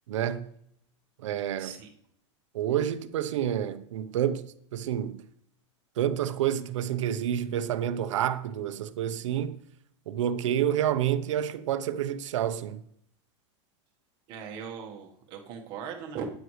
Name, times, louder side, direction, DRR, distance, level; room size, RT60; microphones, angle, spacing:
voice 1, 0.1-0.5 1.2-1.7 2.5-5.3 6.0-9.6 10.1-12.8, right 10 dB, 85° right, 0.9 m, -29 dB
voice 2, 14.3-16.3, right 6 dB, 30° right, 1.4 m, -39 dB
13.0 x 9.3 x 3.2 m
supercardioid pair, 175°, 16 cm